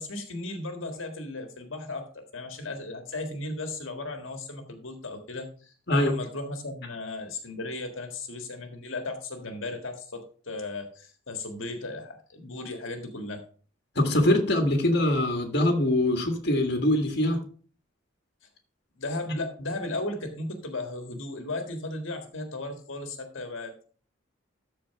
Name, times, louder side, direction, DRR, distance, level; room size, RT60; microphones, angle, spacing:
voice 1, 0.0-13.4 19.0-23.9, left 2 dB, 75° left, 5 dB, 1.6 m, -36 dB
voice 2, 14.0-17.4, left 1 dB, 55° left, 4 dB, 1.7 m, -23 dB
13.5 x 4.5 x 4.6 m, 0.42 s
head